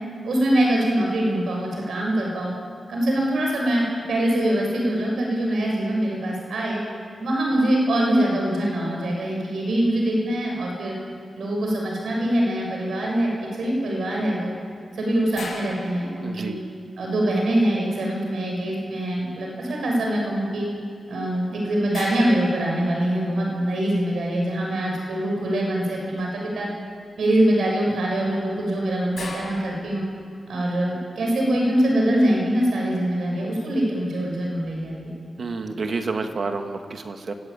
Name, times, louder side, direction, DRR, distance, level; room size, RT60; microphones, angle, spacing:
voice 1, 0.2-2.5 2.9-6.8 7.2-11.0 11.3-14.5 14.9-16.6 17.0-20.7 21.1-26.7 27.2-30.0 30.5-35.1, right 1 dB, 85° right, -1 dB, 6.9 m, -23 dB
sound 1, 15.3-16.9 21.1-21.2 21.9-23.5 26.2-26.5 27.0-27.4 28.3-30.2, left 3 dB, 70° left, 6.5 m, -40 dB
voice 2, 16.2-16.6 35.4-37.3, right 4 dB, 50° right, 5 dB, 1.8 m, -29 dB
24.0 x 17.5 x 9.0 m, 2.1 s
wide cardioid pair, 160°, 0 cm